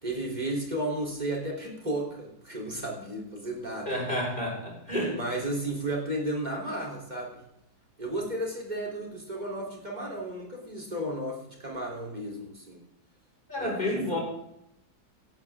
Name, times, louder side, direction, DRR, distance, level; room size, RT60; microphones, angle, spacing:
voice 1, 0.0-4.0 5.1-7.4 8.0-12.8 13.6-14.2, right 1 dB, 25° right, -1 dB, 3.6 m, -33 dB
voice 2, 3.9-5.2 13.5-14.2, left 1 dB, 30° left, -2 dB, 5.2 m, -30 dB
17.0 x 12.0 x 3.6 m, 0.80 s
omnidirectional pair, 1.8 m